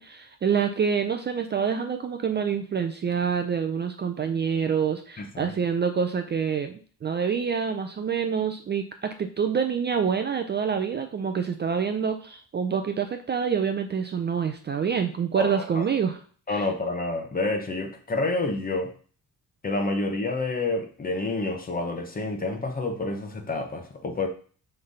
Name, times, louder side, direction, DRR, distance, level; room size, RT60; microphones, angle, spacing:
voice 1, 0.0-6.7 7.0-16.2 16.5-16.7, right 6 dB, 30° right, 6 dB, 0.4 m, -27 dB
voice 2, 5.2-5.5 15.4-15.6 16.5-18.9 19.6-24.3, left 2 dB, 25° left, 4 dB, 1.0 m, -28 dB
5.9 x 3.3 x 5.4 m, 0.42 s
wide cardioid pair, 180°, 34 cm